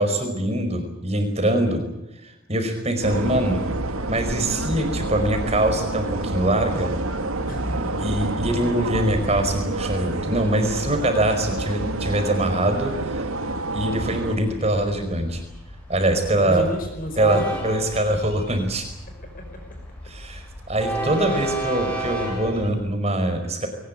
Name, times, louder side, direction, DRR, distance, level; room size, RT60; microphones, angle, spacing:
voice 1, 0.0-1.8 2.2-3.6 4.1-6.9 8.0-13.2 13.7-15.4 15.9-16.6 17.2-18.9 20.1-23.7, right 1 dB, 30° right, 6 dB, 4.9 m, -23 dB
sound 1, 3.0-14.4, right 2 dB, 80° right, 2.1 m, -28 dB
voice 2, 7.5-8.5 8.8-8.9 10.6-11.0 16.4-17.7 19.3-19.6 21.3-21.4, equal, 40° left, 3 dB, 4.9 m, -34 dB
Train, 14.1-22.7, right 1 dB, 5° left, 7.0 m, -33 dB
22.0 x 19.5 x 9.7 m, 0.90 s
head